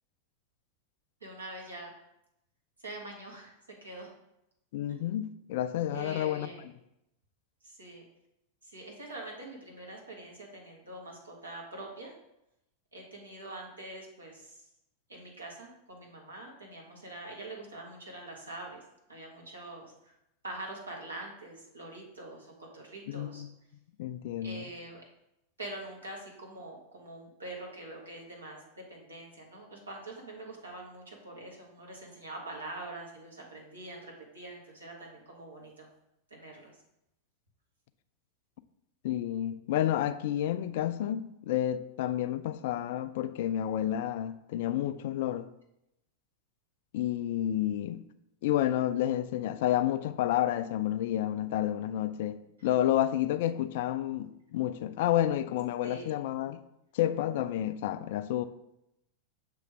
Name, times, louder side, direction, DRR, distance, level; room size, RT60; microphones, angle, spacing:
voice 1, 1.2-1.9 2.8-3.6 3.8-4.1 4.9-5.0 5.9-6.6 7.6-8.0 8.6-12.1 12.9-14.7 15.1-18.8 19.1-20.1 20.4-23.4 24.4-25.0 25.6-35.9 36.3-36.7 52.6-52.7 55.8-56.1, right 2 dB, 75° right, 1.6 m, -44 dB
voice 2, 4.7-6.5 23.1-23.5 24.0-24.7 39.0-45.5 46.9-48.0 48.4-56.6 56.9-58.5, left 12 dB, 50° left, 0.3 m, -30 dB
6.7 x 3.3 x 5.0 m
figure-of-eight pair, 90°, 0 cm